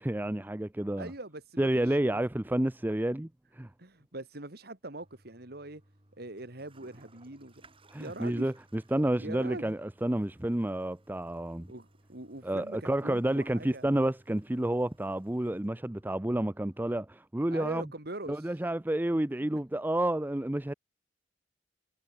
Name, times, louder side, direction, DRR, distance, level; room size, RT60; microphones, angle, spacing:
voice 1, 0.0-1.1 1.6-3.7 7.9-11.7 12.4-17.9 18.3-20.7, right 1 dB, 10° right, 0.5 m, -30 dB
voice 2, 1.0-2.2 3.8-5.8 6.2-7.6 7.9-8.5 9.2-9.7 11.7-13.8 17.5-18.6 19.4-19.8, right 2 dB, 60° right, 2.9 m, -43 dB
Toilet flush, 5.0-17.0, right 1 dB, 30° right, 5.2 m, -62 dB
head